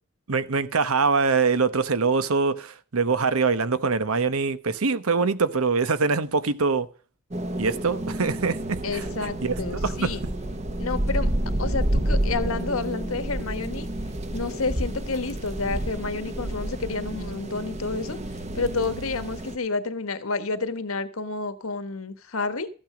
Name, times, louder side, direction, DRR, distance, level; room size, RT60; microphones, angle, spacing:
voice 1, 0.3-6.9 7.6-9.1 9.4-9.5 9.8-10.1, right 4 dB, 80° right, 1.0 m, -23 dB
sound 1, 7.3-19.6, right 1 dB, 30° right, 1.0 m, -29 dB
voice 2, 8.8-10.2 10.8-11.3 11.6-13.9 14.3-18.2 18.5-22.7, left 3 dB, 80° left, 1.4 m, -30 dB
14.0 x 9.0 x 5.1 m
head